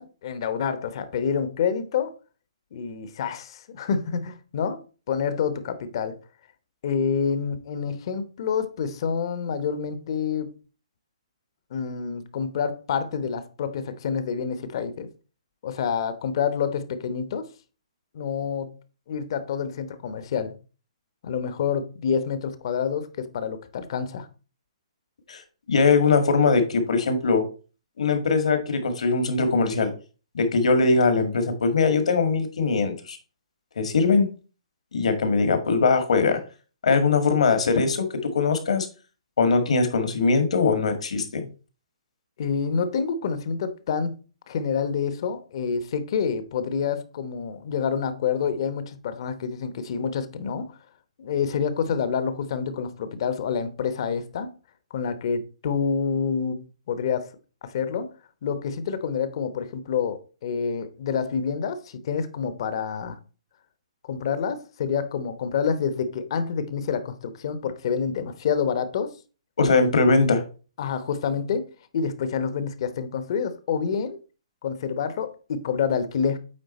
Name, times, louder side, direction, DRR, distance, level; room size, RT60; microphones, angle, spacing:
voice 1, 0.0-2.1 2.7-4.8 5.1-6.2 6.8-10.6 11.7-15.1 15.6-17.5 18.1-18.7 19.1-20.6 21.2-24.3 42.4-44.2 44.5-50.8 51.2-54.5 54.9-57.3 57.6-58.1 58.4-63.2 64.0-69.2 70.8-74.2 74.6-76.4, left 6 dB, 45° left, 0.9 m, -28 dB
voice 2, 25.7-27.5 28.0-29.9 30.3-33.2 33.8-34.3 34.9-36.4 36.8-38.9 39.4-41.5 69.6-70.4, left 4 dB, 75° left, 1.7 m, -21 dB
8.6 x 3.7 x 4.2 m
hypercardioid pair, 155°, 4 cm